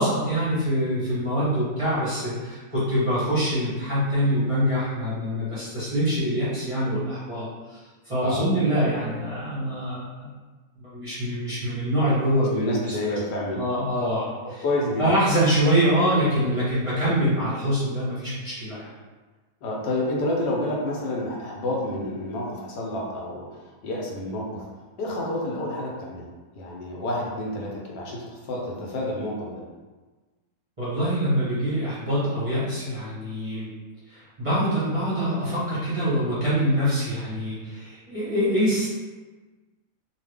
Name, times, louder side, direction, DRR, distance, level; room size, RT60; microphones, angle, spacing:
voice 1, 0.0-7.8 8.0-10.3 10.8-12.6 13.5-14.6 15.0-18.9 30.8-33.7 34.1-38.9, equal, 25° right, -11 dB, 0.8 m, -24 dB
voice 2, 12.5-13.7 14.6-15.1 19.6-24.7 25.0-26.3 26.5-29.6, left 1 dB, 85° left, -2 dB, 1.3 m, -29 dB
2.7 x 2.4 x 3.3 m, 1.3 s
omnidirectional pair, 1.7 m